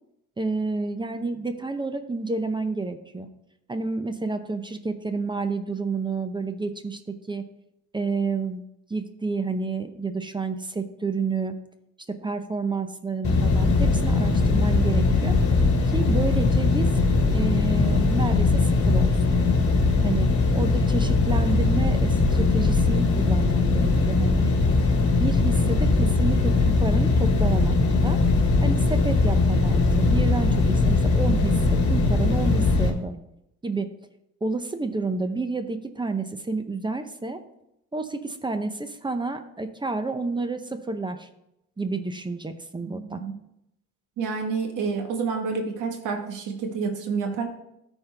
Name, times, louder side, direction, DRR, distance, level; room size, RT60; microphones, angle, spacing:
voice 1, 0.4-3.3 3.7-7.4 7.9-8.6 8.9-11.6 12.1-15.4 15.9-17.0 17.3-19.4 20.0-24.5 25.1-27.8 28.0-28.2 28.6-33.2 33.6-33.9 34.4-37.4 37.9-41.3 41.8-43.2, right 3 dB, 15° right, 8 dB, 0.6 m, -30 dB
sound 1, 13.2-32.9, left 3 dB, 50° left, 1.6 m, -20 dB
voice 2, 42.9-43.3 44.2-47.4, right 5 dB, 90° right, 4 dB, 1.4 m, -29 dB
13.0 x 4.5 x 3.4 m, 0.83 s
cardioid pair, 90°, 30 cm